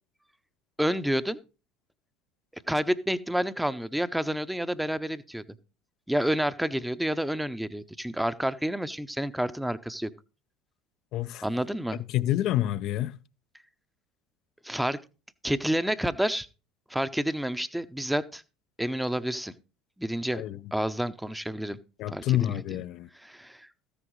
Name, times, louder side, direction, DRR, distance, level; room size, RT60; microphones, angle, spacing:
voice 1, 0.8-1.4 2.5-5.4 6.1-10.1 11.4-12.0 14.6-15.0 15.4-16.5 16.9-18.4 18.8-19.5 20.0-20.4 20.7-21.8 22.1-22.8 23.1-23.7, equal, 5° right, 0.7 m, -29 dB
voice 2, 11.1-11.4 12.1-13.2 20.3-20.6 22.0-23.1, left 14 dB, 55° left, 0.6 m, -28 dB
14.0 x 10.0 x 3.2 m
hypercardioid pair, 70°, 0 cm